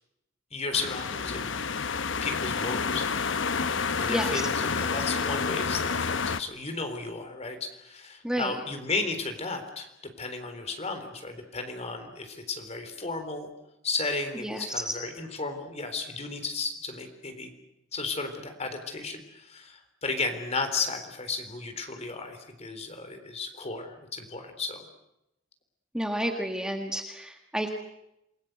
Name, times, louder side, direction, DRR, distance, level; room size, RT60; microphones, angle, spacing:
voice 1, 0.5-1.6 2.2-3.1 3.9-9.9 10.2-13.5 13.8-17.5 17.9-24.8, left 3 dB, 35° left, 7 dB, 3.8 m, -34 dB
sound 1, 0.7-6.4, left 5 dB, 65° left, 0.9 m, -29 dB
voice 2, 4.1-4.4 8.2-8.6 14.4-14.9 25.9-27.7, right 1 dB, 5° right, 3 dB, 1.7 m, -31 dB
28.5 x 20.0 x 8.0 m, 0.86 s
head